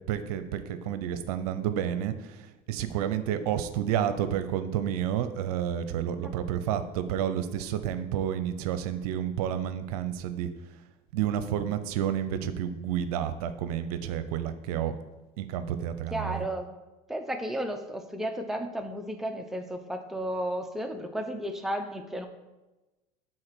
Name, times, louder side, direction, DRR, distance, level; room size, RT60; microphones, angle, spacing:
voice 1, 0.1-10.5 11.1-14.9 15.4-16.5, right 10 dB, 80° right, 11 dB, 0.6 m, -30 dB
voice 2, 16.1-16.7 17.1-22.3, right 1 dB, ahead, 4 dB, 0.8 m, -33 dB
6.3 x 4.3 x 6.1 m, 1.1 s
supercardioid pair, 100°, 19 cm